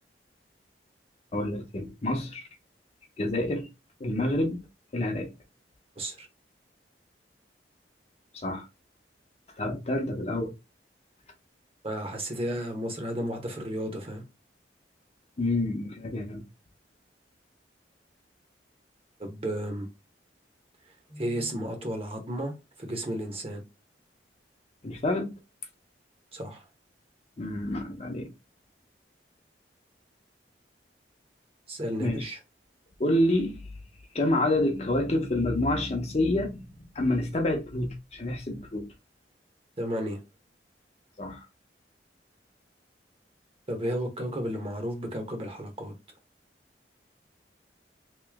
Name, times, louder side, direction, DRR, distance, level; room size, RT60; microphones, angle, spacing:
voice 1, 1.3-2.4 3.2-3.7 4.0-4.6 4.9-5.3 8.3-8.7 9.6-10.5 15.4-16.4 24.8-25.3 27.4-28.3 32.0-32.3 33.0-33.7 34.1-36.7 36.9-38.9 41.2-41.4, left 1 dB, 40° left, 0.7 m, -28 dB
voice 2, 6.0-6.3 11.8-14.2 19.2-19.9 21.1-23.6 26.3-26.6 31.7-32.4 39.8-40.2 43.7-45.9, equal, 35° right, 1.0 m, -33 dB
3.0 x 2.7 x 3.5 m
head